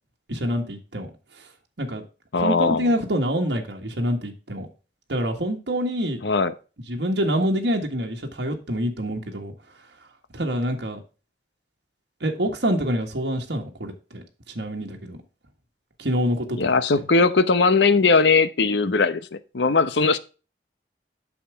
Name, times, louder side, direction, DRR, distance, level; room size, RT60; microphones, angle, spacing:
voice 1, 0.3-1.1 1.8-2.0 2.3-4.7 5.1-6.2 6.9-9.5 10.3-11.0 12.2-15.2 16.0-16.8, equal, 70° right, 1.6 m, -26 dB
voice 2, 2.3-2.9 6.2-6.5 16.6-20.2, left 4 dB, 75° left, 0.8 m, -19 dB
8.7 x 6.5 x 3.5 m
head